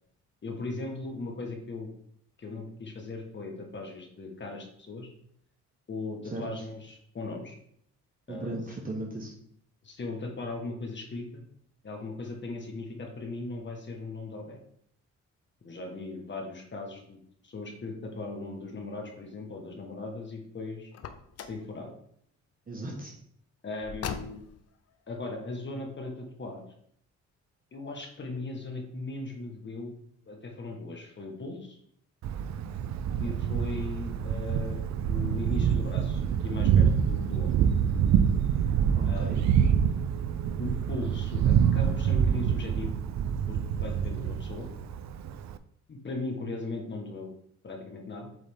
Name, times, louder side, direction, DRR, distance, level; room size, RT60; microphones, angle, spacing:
voice 1, 0.4-1.9 2.4-5.1 5.9-7.6 8.3-8.6 9.8-11.4 11.8-14.6 15.6-20.9 21.5-21.9 23.6-24.4 25.1-26.6 27.7-30.0 30.3-31.8 33.2-37.6 39.0-39.6 40.6-43.0 43.5-44.7 45.9-47.3 47.6-48.3, left 3 dB, 40° left, 1 dB, 1.6 m, -38 dB
voice 2, 8.3-9.3 22.7-23.1 38.9-39.4, right 2 dB, 30° right, -1 dB, 1.3 m, -36 dB
Car, 20.9-21.7 23.8-24.7, left 7 dB, 55° left, 0.7 m, -39 dB
Thunder, 32.2-45.6, right 8 dB, 65° right, 0.5 m, -26 dB
8.2 x 3.8 x 3.7 m, 0.68 s
cardioid pair, 90°, 30 cm